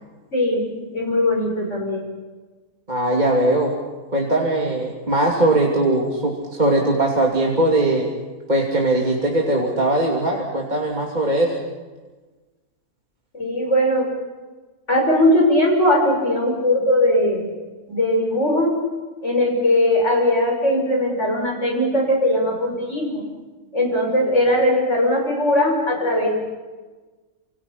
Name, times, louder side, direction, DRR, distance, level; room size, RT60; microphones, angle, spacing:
voice 1, 0.3-2.1 13.3-14.1 14.9-17.5 17.9-18.7 19.2-23.2 23.7-26.3, left 1 dB, 50° left, 0 dB, 6.7 m, -19 dB
voice 2, 2.9-3.7 4.1-8.1 8.5-11.6, right 1 dB, 30° right, -2 dB, 3.1 m, -20 dB
28.5 x 27.0 x 5.8 m, 1.3 s
omnidirectional pair, 1.5 m